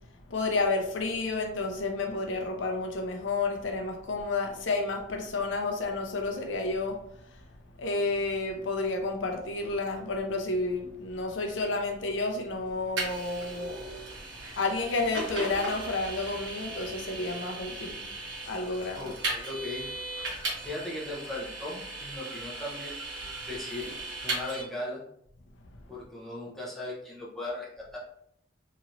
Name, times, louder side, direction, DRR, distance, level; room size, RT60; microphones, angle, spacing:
voice 1, 0.3-7.0 7.8-13.8 14.6-18.1 18.5-19.0, left 3 dB, 85° left, 3 dB, 0.5 m, -30 dB
Vehicle, 13.0-24.6, right 2 dB, 70° right, 1.2 m, -37 dB
voice 2, 19.0-19.9 20.6-23.0 23.4-23.9 24.2-25.0 25.9-28.0, left 1 dB, ahead, -6 dB, 0.7 m, -38 dB
3.0 x 2.9 x 2.5 m, 0.72 s
head